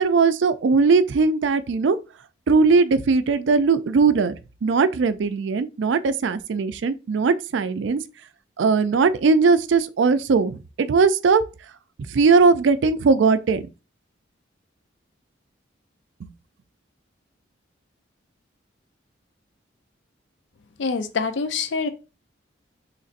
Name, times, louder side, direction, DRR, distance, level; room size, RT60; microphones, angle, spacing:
voice 1, 0.0-2.0 2.5-8.0 8.6-11.4 12.1-13.6 16.2-16.3, right 4 dB, 70° right, 0.4 m, -19 dB
voice 2, 20.8-21.9, left 4 dB, 70° left, 0.4 m, -25 dB
3.9 x 3.2 x 2.5 m
head